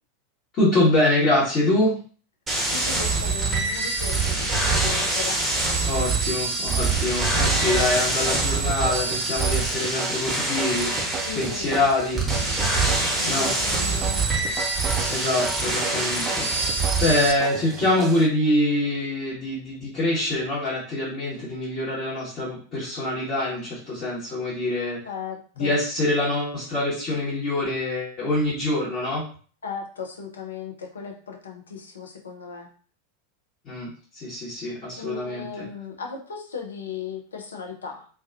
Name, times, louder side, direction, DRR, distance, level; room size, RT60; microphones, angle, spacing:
voice 1, 0.6-1.9 5.9-10.9 11.3-12.2 13.2-13.5 15.1-16.5 17.0-25.0 25.6-29.2 33.6-35.6, left 1 dB, 35° left, -9 dB, 1.0 m, -25 dB
sound 1, 2.5-17.3, right 3 dB, 15° right, 0.8 m, -25 dB
voice 2, 2.7-5.5 11.2-11.9 12.3-14.4 25.0-25.8 29.6-32.7 35.0-38.1, left 6 dB, 75° left, 3 dB, 0.5 m, -36 dB
sound 2, 7.4-18.3, right 5 dB, 30° right, 0.3 m, -35 dB
2.3 x 2.2 x 2.4 m, 0.42 s
figure-of-eight pair, 85°, 0 cm